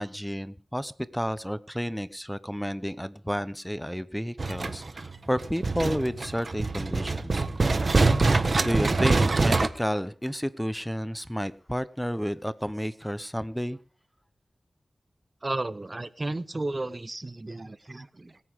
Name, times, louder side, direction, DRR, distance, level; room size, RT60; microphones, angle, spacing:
voice 1, 0.0-7.4 8.4-13.8, equal, ahead, 15 dB, 0.9 m, -31 dB
sound 1, 4.4-9.7, right 3 dB, 55° right, 1.3 m, -24 dB
voice 2, 15.4-18.4, right 2 dB, 35° right, 15 dB, 0.9 m, -33 dB
24.5 x 9.6 x 3.7 m, 0.41 s
wide cardioid pair, 60°, 0 cm